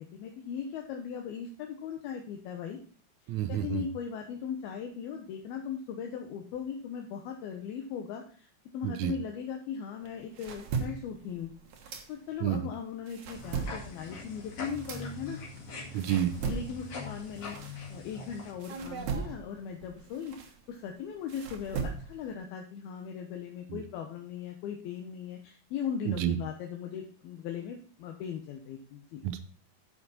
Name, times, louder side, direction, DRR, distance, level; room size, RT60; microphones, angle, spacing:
voice 1, 0.0-2.8 3.5-8.5 8.7-11.5 11.8-15.4 16.4-29.2, left 7 dB, 80° left, 2 dB, 2.9 m, -38 dB
voice 2, 3.3-3.8 8.8-9.1 12.4-12.6 15.9-16.3 26.1-26.4 29.2-29.4, right 11 dB, 75° right, 9 dB, 1.8 m, -29 dB
sound 1, 10.0-12.6 12.9-18.2 18.6-22.3, right 5 dB, 60° right, 2.3 m, -38 dB
sound 2, 13.3-18.5, left 3 dB, 45° left, 3.0 m, -43 dB
10.5 x 7.0 x 4.2 m, 0.43 s
omnidirectional pair, 4.3 m